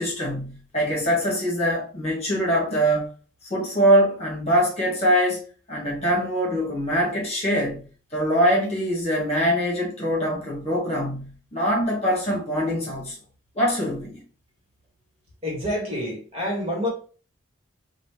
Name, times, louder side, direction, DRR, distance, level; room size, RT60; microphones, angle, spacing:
voice 1, 0.0-3.1 3.4-13.2 13.5-14.2, equal, 30° left, 1.5 m, -23 dB
voice 2, 15.4-16.9, left 1 dB, 30° right, 1.7 m, -27 dB
4.2 x 2.5 x 3.0 m
head